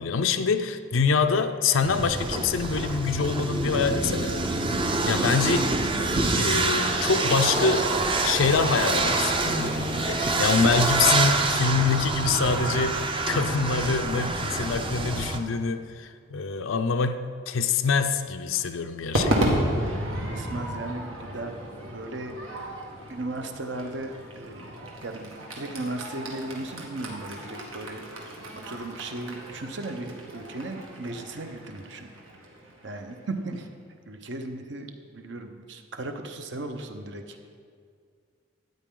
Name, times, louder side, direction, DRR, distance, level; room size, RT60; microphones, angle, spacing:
voice 1, 0.0-4.4 5.1-5.7 6.4-7.9 8.2-17.2 17.5-19.6, left 5 dB, 75° left, 7 dB, 0.5 m, -25 dB
sound 1, 1.8-15.4, right 2 dB, 25° right, 0.6 m, -26 dB
Crowd / Fireworks, 19.1-33.5, equal, 80° right, 1.8 m, -33 dB
voice 2, 20.3-22.7 23.1-32.1 32.8-33.7 34.1-37.4, right 2 dB, 60° right, 6 dB, 0.9 m, -36 dB
13.0 x 9.2 x 3.8 m, 2.2 s
head